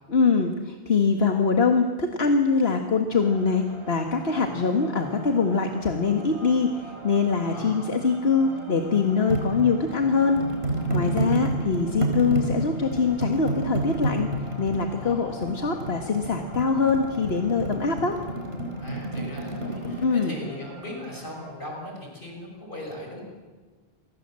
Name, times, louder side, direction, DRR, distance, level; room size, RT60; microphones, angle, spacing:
voice 1, 0.1-10.4 10.9-14.3 14.6-18.2 20.0-20.4, left 4 dB, 75° left, 4 dB, 2.0 m, -23 dB
sound 1, 3.1-21.5, right 3 dB, 30° right, 6.2 m, -43 dB
voice 2, 7.5-7.9 12.3-12.6 15.0-15.4 18.8-23.2, left 1 dB, 55° left, 0 dB, 6.5 m, -39 dB
sound 2, 9.3-20.1, right 2 dB, 75° right, 4.9 m, -30 dB
29.0 x 24.5 x 7.7 m, 1.4 s
omnidirectional pair, 1.0 m